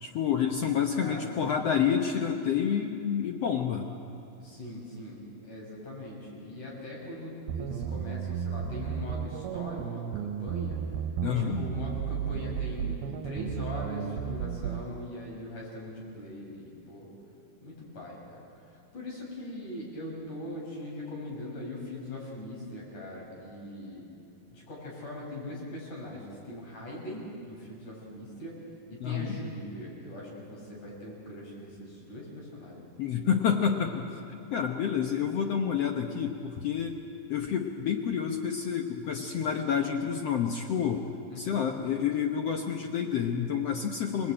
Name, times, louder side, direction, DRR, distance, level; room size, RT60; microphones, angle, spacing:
voice 1, 0.0-3.9 11.2-11.6 29.0-29.3 33.0-34.1 34.5-37.0 37.3-41.0 41.4-44.3, left 8 dB, 75° left, 4 dB, 1.4 m, -29 dB
voice 2, 1.0-1.6 4.4-10.8 11.2-17.1 17.6-24.1 24.5-28.6 28.9-33.1 41.3-41.6, left 1 dB, 50° left, -3 dB, 7.1 m, -41 dB
sound 1, 7.5-14.9, right 8 dB, 80° right, 2.6 m, -34 dB
27.0 x 20.0 x 8.8 m, 2.7 s
omnidirectional pair, 4.4 m